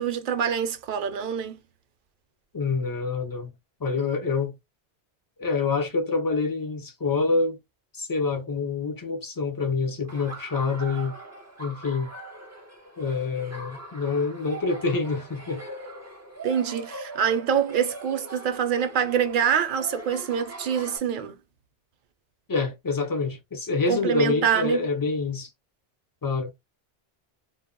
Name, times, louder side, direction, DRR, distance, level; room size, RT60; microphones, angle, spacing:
voice 1, 0.0-1.6 16.4-21.4 23.9-24.9, right 8 dB, 60° right, 0.6 m, -25 dB
voice 2, 2.5-3.5 3.8-4.5 5.4-7.6 7.9-11.2 11.6-12.1 13.0-15.7 22.5-25.5 26.2-26.5, left 4 dB, 35° left, 0.3 m, -26 dB
Laughter, 10.1-21.0, right 2 dB, 20° right, 0.5 m, -42 dB
2.1 x 2.1 x 3.6 m
omnidirectional pair, 1.0 m